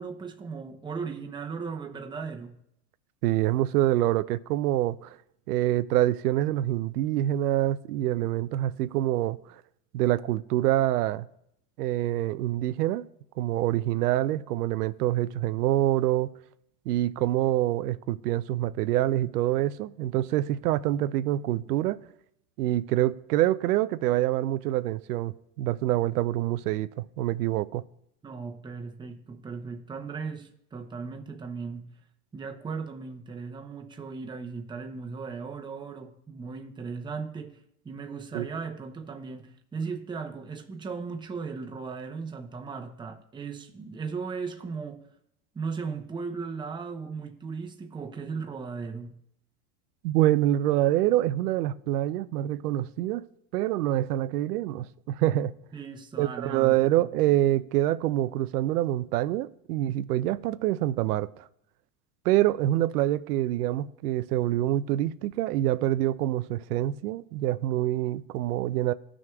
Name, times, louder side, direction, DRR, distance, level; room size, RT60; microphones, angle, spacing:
voice 1, 0.0-2.6 28.2-31.9 32.3-45.0 45.5-49.2 55.7-56.8, right 5 dB, 10° right, 0.7 m, -37 dB
voice 2, 3.2-5.2 5.5-9.5 9.9-11.3 11.8-13.0 13.4-16.3 16.9-22.0 22.6-27.8 38.3-38.5 50.0-53.2 53.5-55.5 56.2-61.3 62.2-68.9, right 14 dB, 90° right, 0.5 m, -26 dB
15.5 x 6.2 x 2.3 m
supercardioid pair, 125°, 45 cm